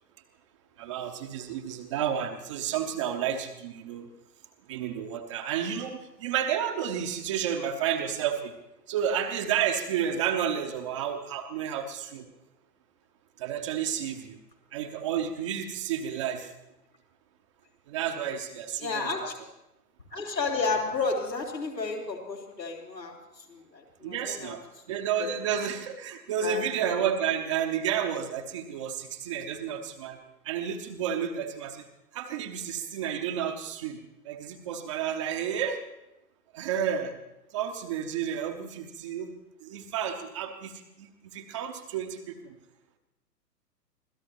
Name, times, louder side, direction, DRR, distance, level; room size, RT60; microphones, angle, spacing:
voice 1, 0.8-4.1 4.7-8.5 8.9-12.3 13.4-14.4 14.7-16.5 17.9-19.1 24.0-24.6 24.9-30.2 30.4-31.8 32.1-35.8 36.5-37.2 37.5-39.3 39.6-42.6, right 8 dB, 20° right, 5 dB, 0.6 m, -31 dB
voice 2, 18.8-19.3 20.1-23.1 23.5-24.5 25.2-25.3 26.4-26.6, left 4 dB, 80° left, -2 dB, 3.9 m, -31 dB
25.0 x 16.5 x 3.0 m, 0.95 s
figure-of-eight pair, 115°, 49 cm